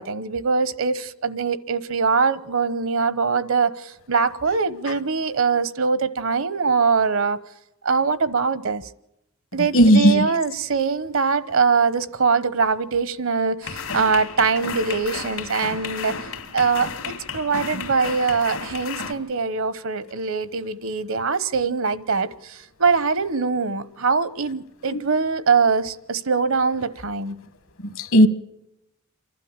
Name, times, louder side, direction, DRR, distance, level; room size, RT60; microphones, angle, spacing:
voice 1, 0.0-7.4 7.8-8.9 9.5-16.3 16.5-27.4, right 5 dB, 70° right, 0.9 m, -23 dB
voice 2, 9.7-10.3 28.0-28.3, equal, 65° left, 1.1 m, -14 dB
sound 1, 13.6-19.1, left 5 dB, 85° left, 2.3 m, -33 dB
28.5 x 12.0 x 8.8 m
head